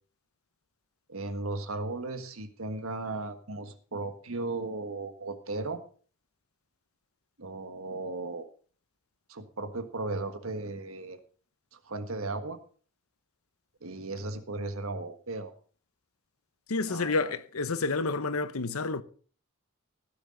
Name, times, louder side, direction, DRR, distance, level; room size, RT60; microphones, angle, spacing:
voice 1, 1.1-5.8 7.4-8.4 9.3-11.2 11.7-12.6 13.8-15.5 16.9-17.3, right 2 dB, 75° right, 1.5 m, -36 dB
voice 2, 16.7-19.0, left 3 dB, 85° left, 0.8 m, -29 dB
16.5 x 9.9 x 3.9 m
head